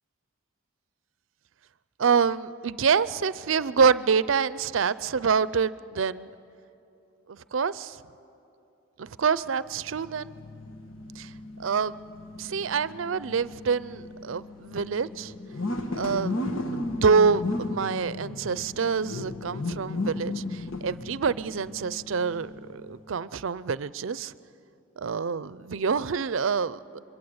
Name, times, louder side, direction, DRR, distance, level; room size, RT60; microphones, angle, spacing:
voice 1, 2.0-6.3 7.3-8.0 9.0-10.3 11.2-11.3 11.6-12.0 12.4-15.3 15.9-16.4 16.7-24.3 25.0-27.0, right 5 dB, 75° right, 17 dB, 0.5 m, -26 dB
sound 1, 9.7-23.0, left 2 dB, 80° left, 1.4 m, -35 dB
26.0 x 22.5 x 7.9 m, 2.7 s
head